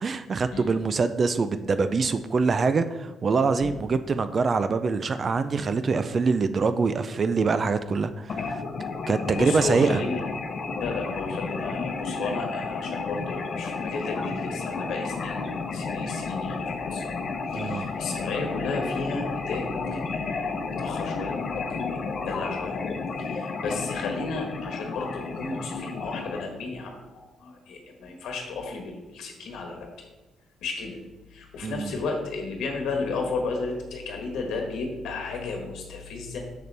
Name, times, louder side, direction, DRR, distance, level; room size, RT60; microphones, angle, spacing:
voice 1, 0.0-8.6 9.1-10.0 17.5-17.9 31.6-31.9, right 4 dB, 35° right, 11 dB, 0.3 m, -24 dB
sound 1, 8.3-26.4, left 4 dB, 45° left, 0.8 m, -32 dB
voice 2, 9.3-10.2 10.8-17.1 17.5-22.8 23.2-30.1 30.6-31.0 31.3-36.5, left 3 dB, 75° left, 2 dB, 1.2 m, -33 dB
6.7 x 6.7 x 3.3 m, 1.2 s
cardioid pair, 120°, 0 cm